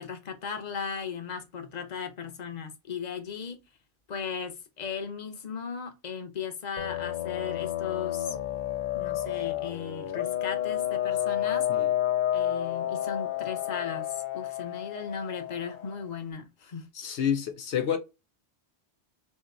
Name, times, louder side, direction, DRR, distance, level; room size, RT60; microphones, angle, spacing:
voice 1, 0.0-3.6 4.1-8.4 8.9-11.9 12.3-14.1 14.3-16.9, left 6 dB, 40° left, 1.0 m, -37 dB
sound 1, 6.8-16.0, left 12 dB, 60° left, 0.5 m, -30 dB
voice 2, 16.9-18.0, left 8 dB, 80° left, 1.0 m, -28 dB
4.2 x 2.9 x 3.7 m
omnidirectional pair, 1.1 m